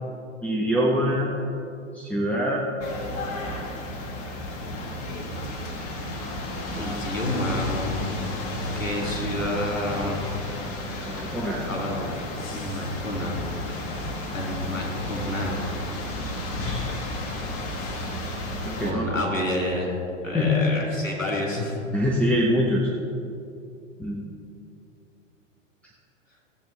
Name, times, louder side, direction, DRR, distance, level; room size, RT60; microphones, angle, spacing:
voice 1, 0.4-1.3 1.9-2.7 3.3-3.5 6.7-7.2 9.0-9.1 9.4-9.5 11.0-11.6 18.6-19.1 20.3-20.6 21.9-22.9 24.0-24.3, equal, 5° left, -3 dB, 1.0 m, -25 dB
sound 1, 2.8-18.9, left 1 dB, 35° left, 1.6 m, -32 dB
voice 2, 6.8-8.2 8.7-10.3 11.7-12.1 12.5-13.4 14.3-15.6 18.8-19.9 20.2-21.8, left 1 dB, 90° left, -2 dB, 2.9 m, -29 dB
16.0 x 8.4 x 3.4 m, 2.5 s
figure-of-eight pair, 100°, 38 cm